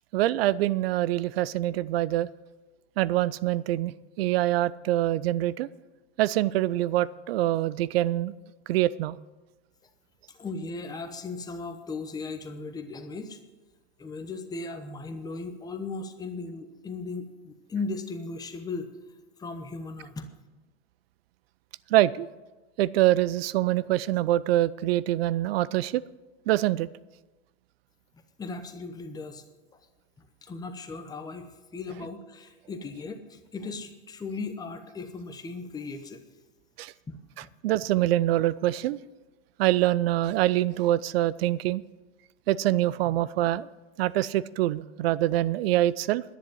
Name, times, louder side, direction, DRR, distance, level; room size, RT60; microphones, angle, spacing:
voice 1, 0.1-2.3 3.0-5.7 6.2-8.3 8.7-9.2 21.9-22.3 22.8-26.0 26.5-26.9 36.8-36.9 37.6-39.0 39.6-41.8 42.5-43.7 44.0-46.2, right 15 dB, 65° right, 19 dB, 0.5 m, -25 dB
voice 2, 10.3-13.4 14.0-18.9 19.4-20.3 28.4-29.4 30.4-36.2 37.1-37.2, left 3 dB, 10° left, 6 dB, 1.0 m, -37 dB
10.5 x 10.0 x 7.6 m, 1.1 s
hypercardioid pair, 130°, 33 cm